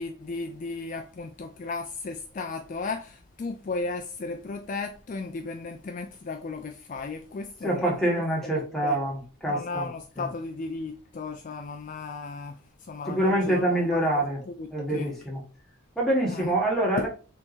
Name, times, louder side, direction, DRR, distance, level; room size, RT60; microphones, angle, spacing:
voice 1, 0.0-9.0 9.5-14.1 14.5-15.1 16.3-16.5 17.0-17.1, left 3 dB, 40° left, 0.4 m, -35 dB
voice 2, 7.6-9.9 10.2-10.3 13.1-14.4 14.7-15.4 15.9-17.1, right 1 dB, ahead, 1.5 m, -25 dB
4.5 x 3.4 x 2.5 m
head